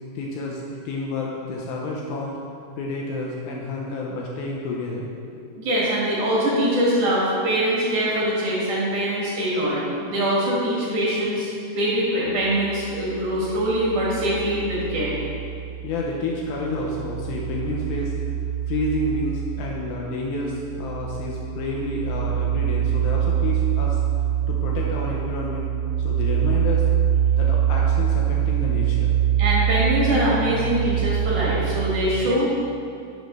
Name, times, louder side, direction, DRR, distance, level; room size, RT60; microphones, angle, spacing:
voice 1, 0.2-2.4 2.8-5.1 15.8-18.1 18.7-24.0 24.5-25.7 26.0-26.9 27.4-29.2, left 2 dB, 80° left, -2 dB, 2.3 m, -29 dB
voice 2, 5.5-15.2 29.4-32.7, right 1 dB, 60° right, -6 dB, 2.7 m, -23 dB
sound 1, 12.3-16.1 16.4-32.2, right 10 dB, 90° right, 2.1 m, -25 dB
11.0 x 6.5 x 3.1 m, 2.5 s
omnidirectional pair, 4.7 m